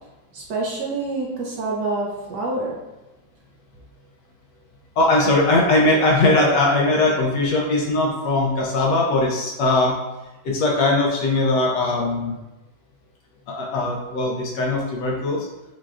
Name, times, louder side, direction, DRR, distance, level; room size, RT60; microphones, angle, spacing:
voice 1, 0.3-2.8, right 2 dB, 70° right, -3 dB, 1.1 m, -27 dB
voice 2, 5.0-10.0 10.4-12.4 13.5-15.5, left 2 dB, 70° left, -2 dB, 1.1 m, -20 dB
6.0 x 2.3 x 2.4 m, 1.0 s
omnidirectional pair, 2.2 m